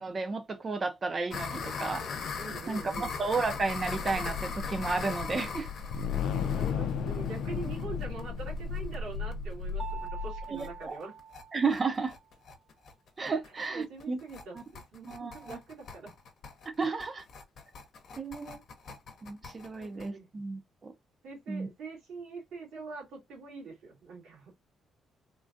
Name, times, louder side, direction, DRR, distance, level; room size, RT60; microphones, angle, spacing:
voice 1, 0.0-2.0 2.7-5.7 10.5-10.9 11.5-12.1 13.2-14.2 14.5-14.6 15.0-15.6 16.8-17.2 18.2-18.6 19.2-20.9 21.5-21.7, right 4 dB, 35° right, 0.6 m, -32 dB
sound 1, 1.3-9.0 9.3-9.4 9.7-9.8 10.1-10.2 10.4-10.7 11.0-20.1, left 5 dB, 65° left, 0.8 m, -40 dB
voice 2, 2.4-3.2 6.4-11.2 13.4-16.1 19.8-20.3 21.2-24.5, right 4 dB, 80° right, 2.1 m, -44 dB
sound 2, 2.6-10.8, left 6 dB, 85° left, 0.5 m, -35 dB
Mallet percussion, 9.8-12.3, right 7 dB, 5° left, 0.9 m, -45 dB
3.7 x 2.4 x 2.6 m
cardioid pair, 90°, 0 cm